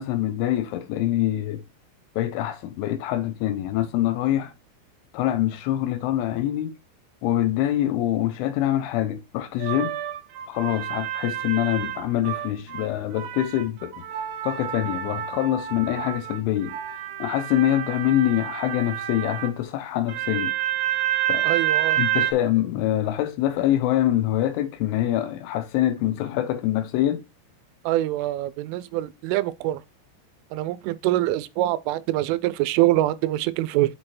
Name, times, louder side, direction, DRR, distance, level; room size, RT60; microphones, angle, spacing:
voice 1, 0.0-1.6 2.2-4.5 5.1-6.7 7.2-10.0 10.5-14.1 14.4-16.8 17.2-20.5 21.3-21.5 22.0-27.2, left 13 dB, 80° left, 3.4 m, -25 dB
sound 1, 9.6-12.9 13.2-19.5 20.1-22.3, right 12 dB, 75° right, 2.6 m, -28 dB
voice 2, 21.4-22.0 27.9-29.8 30.5-34.0, right 15 dB, 90° right, 3.2 m, -24 dB
8.1 x 4.5 x 4.3 m
omnidirectional pair, 5.5 m